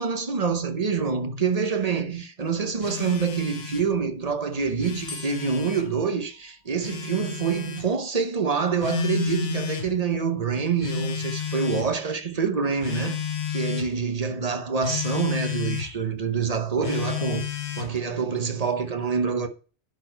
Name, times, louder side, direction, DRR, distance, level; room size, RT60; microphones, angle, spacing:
voice 1, 0.0-13.2 13.5-17.5 17.8-19.5, right 5 dB, 40° right, 0.8 m, -26 dB
Telephone, 2.8-3.9 4.7-5.9 6.8-7.9 8.8-9.9 10.8-11.9 12.8-13.9 14.8-15.9 16.8-18.0, left 8 dB, 70° left, 1.2 m, -31 dB
sound 1, 5.1-7.0, left 3 dB, 15° left, 1.5 m, -44 dB
10.5 x 4.4 x 4.4 m
omnidirectional pair, 1.1 m